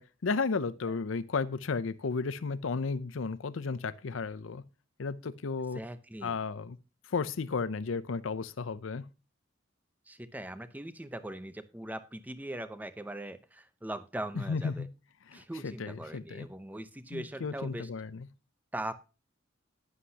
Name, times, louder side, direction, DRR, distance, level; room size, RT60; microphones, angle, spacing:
voice 1, 0.0-4.6 5.0-5.8 6.2-6.8 7.1-9.1 14.4-14.9 15.3-16.5 17.1-18.3, left 4 dB, 85° left, 16 dB, 0.6 m, -33 dB
voice 2, 5.7-6.4 10.1-14.9 15.3-17.9 18.7-18.9, right 1 dB, 10° right, 12 dB, 0.7 m, -40 dB
11.5 x 9.7 x 2.8 m, 0.31 s
head